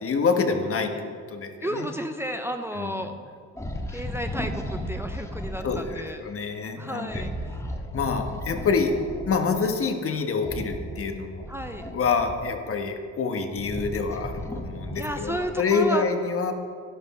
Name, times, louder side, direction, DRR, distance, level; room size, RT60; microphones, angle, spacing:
voice 1, 0.0-1.9 2.7-3.1 5.6-7.3 7.9-9.0 9.3-11.5 11.9-16.5, left 4 dB, 45° left, 5 dB, 1.2 m, -27 dB
voice 2, 1.6-3.1 3.9-6.2 6.8-7.3 11.5-11.9 14.9-16.0, equal, 10° right, 5 dB, 0.6 m, -32 dB
sound 1, 3.6-5.9 7.0-9.4 10.4-12.7 13.2-15.6, equal, 10° left, 1.4 m, -35 dB
11.5 x 10.5 x 4.2 m, 2.2 s
cardioid pair, 90°, 30 cm